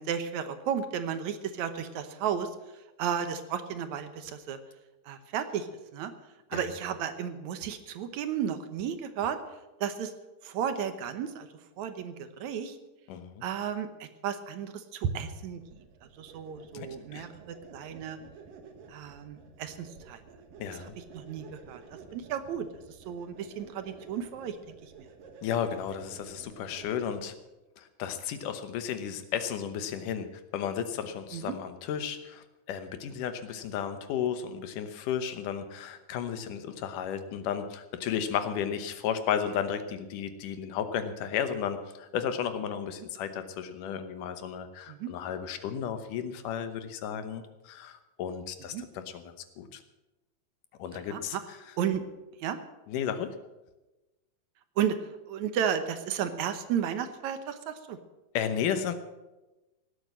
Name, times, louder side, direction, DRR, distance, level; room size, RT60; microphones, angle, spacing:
voice 1, 0.0-2.5 3.0-4.6 5.1-6.1 6.5-9.4 9.8-10.1 10.4-11.5 11.8-12.8 13.4-15.6 16.2-18.2 18.9-20.2 21.1-21.8 22.1-22.7 23.1-24.6 24.8-24.9 31.3-31.5 44.9-45.1 48.7-48.8 51.1-51.4 51.8-52.0 52.4-52.6 54.8-55.0 55.3-58.0, right 8 dB, 70° right, 10 dB, 2.2 m, -33 dB
voice 2, 13.1-13.4 16.7-16.9 17.1-17.3 20.6-20.9 25.4-27.3 27.8-30.3 30.5-49.8 50.8-51.6 52.9-53.3 58.3-58.9, left 8 dB, 80° left, 9 dB, 2.6 m, -33 dB
sound 1, 15.6-27.3, right 5 dB, 90° right, 3.2 m, -51 dB
18.0 x 8.2 x 7.4 m, 1.0 s
omnidirectional pair, 3.7 m